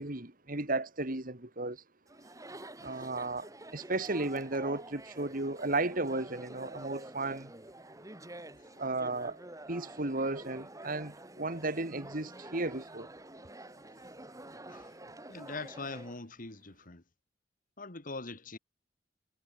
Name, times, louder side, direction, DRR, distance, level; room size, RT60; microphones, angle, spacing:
voice 1, 0.0-1.8 2.8-7.5 8.8-9.4 9.7-13.1, right 2 dB, 50° right, 2.7 m, -34 dB
Chatter, 2.1-16.2, right 1 dB, 20° right, 7.5 m, -48 dB
voice 2, 15.3-17.0 17.8-18.6, left 3 dB, 50° left, 2.1 m, -42 dB
head